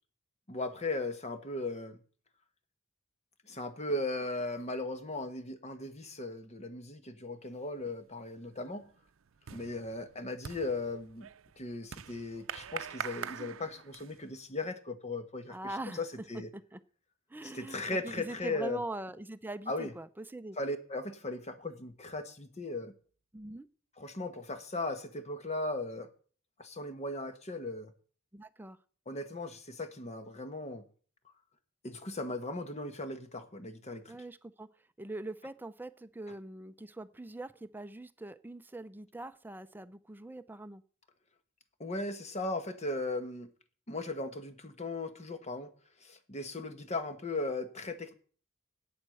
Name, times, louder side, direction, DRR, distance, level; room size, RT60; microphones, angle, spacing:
voice 1, 0.5-2.0 3.5-8.9 9.5-11.3 11.6-15.6 15.9-16.5 17.4-18.8 19.7-19.9 20.6-22.9 24.0-26.1 26.6-27.9 29.1-30.8 31.8-34.2 41.8-43.5 43.9-45.7 46.0-48.1, left 2 dB, 35° left, 1.2 m, -37 dB
sound 1, 7.8-8.2 8.5-14.3, right 8 dB, 75° right, 0.6 m, -44 dB
voice 2, 15.5-16.0 16.5-16.8 17.3-20.6 23.3-23.7 28.3-28.8 34.1-34.7 35.0-40.8, right 2 dB, 10° right, 0.5 m, -42 dB
8.7 x 8.1 x 7.7 m
head